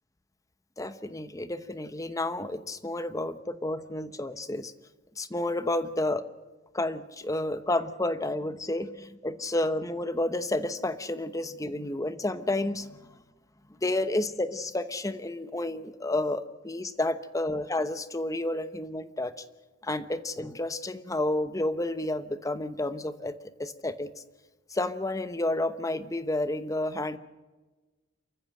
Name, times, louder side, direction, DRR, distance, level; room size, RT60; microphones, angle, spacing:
voice 1, 0.8-4.7 5.2-6.2 6.7-13.1 13.8-19.3 19.8-23.3 23.6-24.1 24.7-27.2, left 1 dB, 15° left, 12 dB, 0.9 m, -30 dB
27.5 x 15.0 x 7.7 m, 1.2 s
head